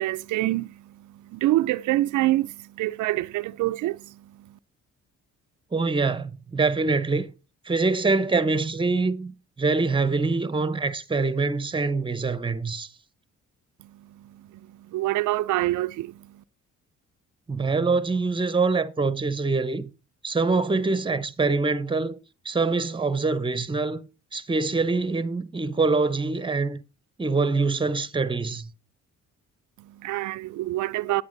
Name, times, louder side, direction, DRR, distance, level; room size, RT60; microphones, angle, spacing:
voice 1, 0.0-4.6 13.8-16.4 29.8-31.2, right 17 dB, 80° right, 0.5 m, -27 dB
voice 2, 5.7-7.3 7.6-12.9 17.5-19.9 20.2-22.2 22.4-26.8 27.2-28.7, right 3 dB, 15° right, 0.9 m, -24 dB
10.5 x 8.6 x 3.9 m
cardioid pair, 90°, 30 cm